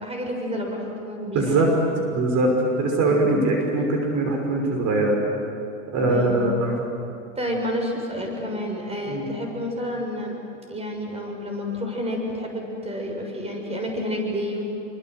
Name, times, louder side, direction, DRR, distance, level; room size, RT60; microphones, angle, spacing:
voice 1, 0.0-1.6 3.1-3.2 6.1-6.4 7.3-10.4 10.7-14.6, equal, 15° right, 1 dB, 6.6 m, -29 dB
voice 2, 1.3-1.7 2.1-5.2 5.9-6.7 9.1-9.2, right 2 dB, 45° right, 1 dB, 5.6 m, -22 dB
28.0 x 24.5 x 8.0 m, 2.7 s
hypercardioid pair, 85°, 39 cm